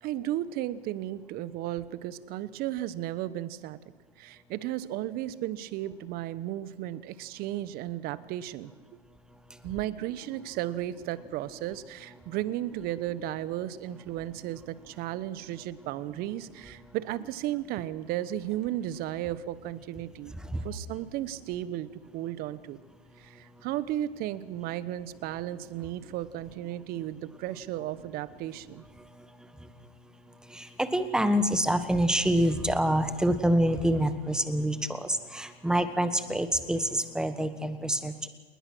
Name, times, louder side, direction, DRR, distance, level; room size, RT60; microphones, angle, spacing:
voice 1, 0.0-3.8 4.2-8.7 9.6-20.4 20.6-22.8 23.2-28.8, right 13 dB, 30° right, 16 dB, 1.0 m, -34 dB
voice 2, 30.5-38.3, right 1 dB, ahead, 10 dB, 1.3 m, -26 dB
29.0 x 20.0 x 6.2 m, 1.4 s
hypercardioid pair, 130°, 32 cm